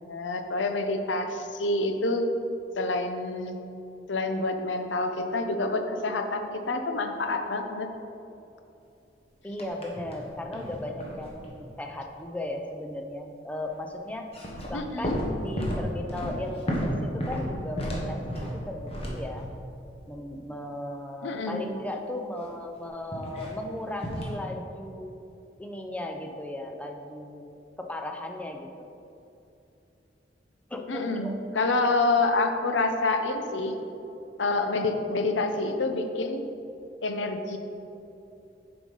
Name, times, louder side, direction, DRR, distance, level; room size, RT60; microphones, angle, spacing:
voice 1, 0.0-2.3 2.8-3.6 4.1-7.9 14.7-15.2 21.2-21.7 30.9-33.7 34.4-36.4 37.0-37.6, left 2 dB, 85° left, 6 dB, 0.7 m, -27 dB
voice 2, 9.4-14.3 14.7-19.5 20.1-25.1 25.6-27.5 27.8-28.9 30.7-31.4, left 1 dB, 10° left, 3 dB, 0.5 m, -36 dB
sound 1, 9.6-10.2 10.5-11.7 14.2-19.7 23.1-23.5 24.0-24.4, equal, 35° left, 1.2 m, -32 dB
7.3 x 4.8 x 5.4 m, 2.8 s
head